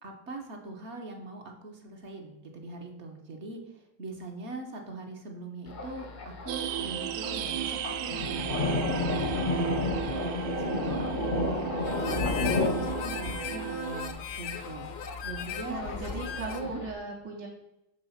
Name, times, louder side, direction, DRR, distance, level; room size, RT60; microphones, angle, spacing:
voice 1, 0.0-8.9 9.4-9.8 10.2-14.9 15.2-15.8 16.6-16.8, right 2 dB, 50° right, 3 dB, 0.9 m, -41 dB
Thunder, 5.7-16.9, left 3 dB, 45° left, 0.6 m, -32 dB
sound 1, 6.5-14.1, right 11 dB, 90° right, 1.3 m, -35 dB
Harmonica, 11.8-16.8, left 9 dB, 75° left, 1.1 m, -39 dB
voice 2, 15.7-17.5, right 3 dB, 70° right, -4 dB, 1.6 m, -37 dB
6.9 x 3.6 x 5.6 m, 0.86 s
omnidirectional pair, 1.9 m